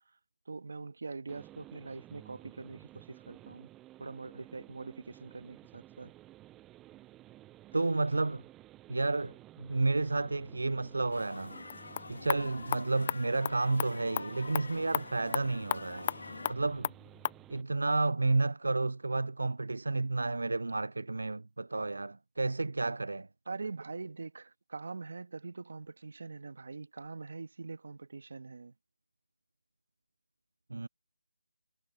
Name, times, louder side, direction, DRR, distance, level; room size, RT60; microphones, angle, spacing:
voice 1, 0.5-3.7 4.0-6.1 23.5-28.7, right 4 dB, 60° right, 1.6 m, -43 dB
sound 1, 1.3-17.6, right 15 dB, 10° right, 0.7 m, -54 dB
voice 2, 7.7-8.4 8.9-11.6 12.1-16.1 16.5-16.9 17.5-23.3 30.7-30.9, right 3 dB, 85° right, 0.3 m, -31 dB
sound 2, 11.1-16.6, left 3 dB, 80° left, 2.0 m, -46 dB
sound 3, 11.6-17.4, left 10 dB, 25° left, 0.5 m, -37 dB
figure-of-eight pair, 165°, 0 cm